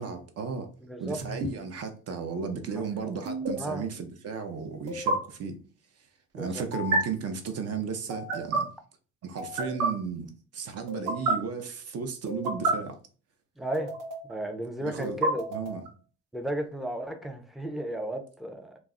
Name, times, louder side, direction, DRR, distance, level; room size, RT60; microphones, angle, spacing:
voice 1, 0.0-0.7 1.0-5.6 6.3-8.7 9.2-13.0 14.8-15.2 15.5-15.8, right 5 dB, 55° right, 0.6 m, -34 dB
voice 2, 0.8-1.2 3.0-3.1 3.6-3.8 6.3-6.6 13.6-13.9 14.3-15.5 16.3-18.7, right 1 dB, ahead, 0.4 m, -34 dB
sound 1, 1.2-1.5 3.2-3.5 4.9-5.1 6.7-7.0 8.1-8.6 9.4-9.9 10.9-11.3 12.3-12.7 13.7-14.3 15.0-15.9, right 2 dB, 85° right, 0.8 m, -29 dB
2.3 x 2.0 x 3.6 m
cardioid pair, 90°, 30 cm